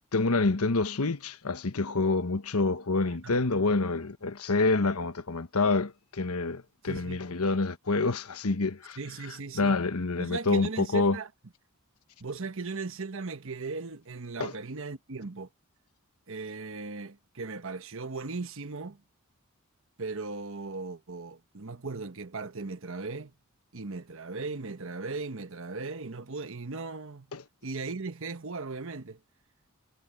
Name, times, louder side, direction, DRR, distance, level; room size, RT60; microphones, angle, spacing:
voice 1, 0.1-9.0 9.5-11.2 14.4-14.5 27.3-27.4, left 3 dB, 85° left, 1.2 m, -27 dB
voice 2, 3.0-3.4 6.9-7.3 9.0-9.8 10.2-11.3 12.2-15.5 16.3-19.0 20.0-23.3 23.7-27.3 27.6-29.2, right 3 dB, 65° right, 1.2 m, -37 dB
head